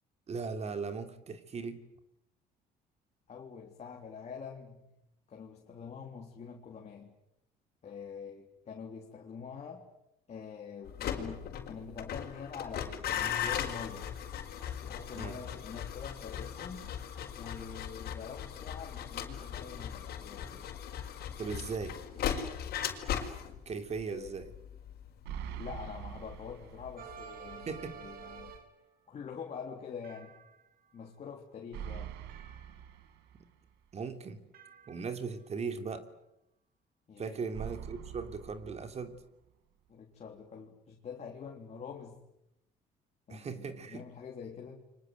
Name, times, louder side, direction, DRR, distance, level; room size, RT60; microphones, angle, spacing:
voice 1, 0.3-1.8 15.1-15.4 21.4-22.0 23.6-24.5 27.7-28.0 33.9-34.4 34.9-36.1 37.2-39.2 43.3-44.0, right 5 dB, 40° right, 8 dB, 3.2 m, -38 dB
voice 2, 3.3-4.9 5.3-7.1 7.8-9.9 10.3-14.1 14.8-16.9 17.3-20.7 24.1-24.4 25.6-28.5 29.1-30.3 30.9-32.2 37.1-37.5 39.9-42.2 43.3-44.8, left 6 dB, 40° left, 0 dB, 3.8 m, -45 dB
sound 1, 10.9-27.9 28.1-28.6, left 9 dB, 65° left, 5.0 m, -38 dB
sound 2, 25.2-27.3 27.6-27.7 31.7-33.7 37.5-39.5, right 10 dB, 85° right, 1.9 m, -44 dB
sound 3, 27.0-28.9 30.0-30.9 32.3-33.2 34.5-35.4, right 7 dB, 60° right, 3.2 m, -51 dB
30.0 x 24.5 x 8.1 m, 0.83 s
cardioid pair, 110°, 17 cm